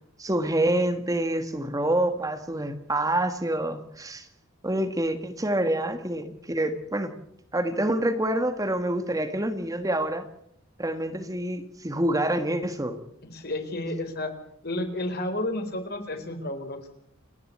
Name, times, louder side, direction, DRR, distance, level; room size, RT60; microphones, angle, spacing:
voice 1, 0.2-4.3 4.6-7.1 7.5-10.2 10.8-13.0, right 1 dB, 15° right, 7 dB, 1.6 m, -27 dB
voice 2, 13.2-14.3 14.6-16.9, left 1 dB, 50° left, 6 dB, 4.4 m, -31 dB
29.0 x 11.0 x 8.6 m, 0.71 s
head